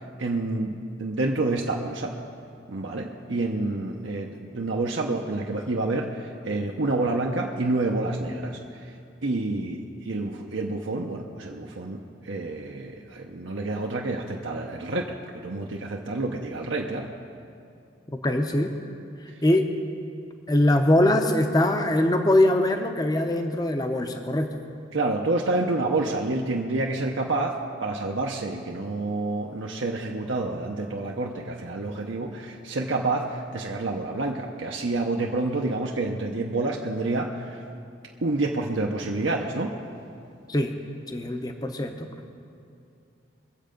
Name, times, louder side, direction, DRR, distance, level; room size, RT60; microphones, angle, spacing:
voice 1, 0.2-2.1 2.7-8.9 9.2-15.1 15.4-17.1 19.3-19.4 24.9-37.6 38.2-39.7, right 2 dB, 75° right, 0 dB, 0.8 m, -28 dB
voice 2, 18.2-18.7 19.4-19.7 20.5-24.6 40.5-40.7 41.1-42.1, left 1 dB, 20° left, 5 dB, 0.7 m, -22 dB
22.5 x 7.6 x 5.2 m, 2.5 s
head